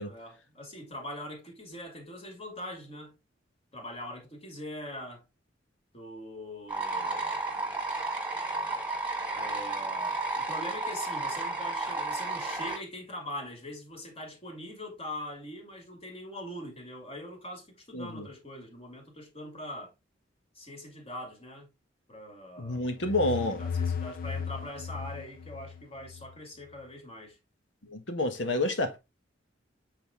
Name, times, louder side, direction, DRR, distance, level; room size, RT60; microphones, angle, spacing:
voice 1, 0.1-3.2 3.7-5.2 5.9-7.4 9.4-19.9 20.5-21.7 22.1-23.3 23.6-27.4, left 1 dB, 30° left, 2.3 m, -42 dB
sound 1, 6.7-12.8, right 2 dB, 10° right, 1.7 m, -32 dB
voice 2, 17.9-18.3 22.6-23.6 27.9-29.0, left 2 dB, 75° left, 1.6 m, -29 dB
sound 2, 22.7-26.4, left 6 dB, 50° left, 0.4 m, -35 dB
7.9 x 4.2 x 3.6 m
head